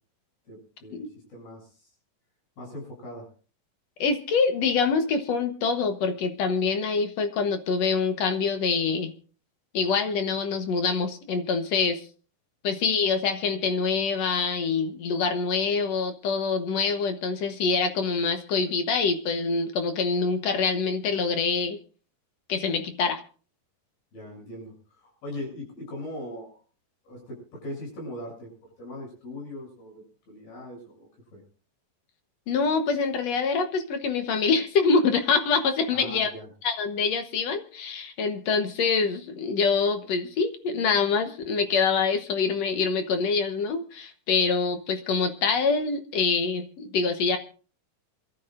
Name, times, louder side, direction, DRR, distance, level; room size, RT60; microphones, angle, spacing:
voice 1, 0.5-1.9 2.6-3.3 24.1-26.6 27.0-28.5 28.8-31.4 35.9-36.5, left 1 dB, 90° left, 0 dB, 9.4 m, -40 dB
voice 2, 4.0-9.1 9.7-12.0 12.6-21.8 22.5-23.2 32.5-36.3 36.6-47.4, left 5 dB, 60° left, 7 dB, 1.9 m, -25 dB
27.5 x 13.5 x 2.6 m, 0.40 s
omnidirectional pair, 4.1 m